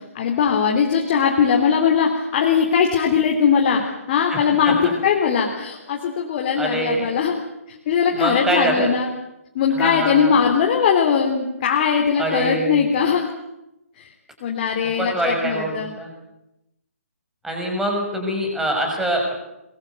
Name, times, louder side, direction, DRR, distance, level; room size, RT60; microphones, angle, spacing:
voice 1, 0.2-3.8 4.1-7.4 7.9-9.1 9.6-13.3 14.0-14.1 14.4-16.0, left 7 dB, 35° left, 1 dB, 3.5 m, -20 dB
voice 2, 4.3-4.9 6.6-7.1 8.1-8.9 9.7-10.4 12.2-12.8 15.0-16.1 17.4-19.4, right 1 dB, 5° right, 1 dB, 6.2 m, -24 dB
23.5 x 22.0 x 8.1 m, 0.90 s
figure-of-eight pair, 140°, 8 cm